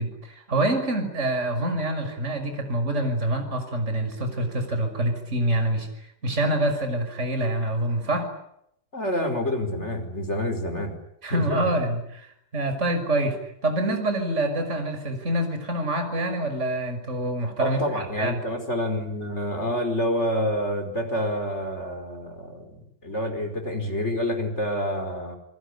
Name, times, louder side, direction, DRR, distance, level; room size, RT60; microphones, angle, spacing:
voice 1, 0.0-8.3 11.2-18.4, right 1 dB, 15° right, 7 dB, 5.9 m, -26 dB
voice 2, 8.9-10.9 11.3-11.6 17.6-25.4, equal, 15° left, 5 dB, 4.8 m, -28 dB
27.5 x 21.5 x 9.9 m, 0.76 s
omnidirectional pair, 4.8 m